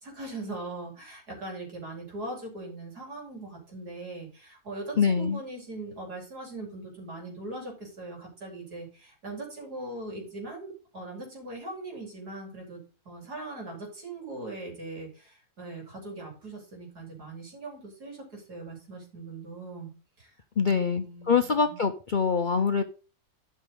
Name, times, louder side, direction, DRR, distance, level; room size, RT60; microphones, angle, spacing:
voice 1, 0.0-19.9 20.2-20.3 20.6-21.9, right 2 dB, 80° right, 0 dB, 4.6 m, -40 dB
voice 2, 5.0-5.4 20.6-22.8, left 5 dB, 50° left, 7 dB, 0.6 m, -24 dB
12.0 x 6.2 x 3.8 m, 0.36 s
omnidirectional pair, 1.6 m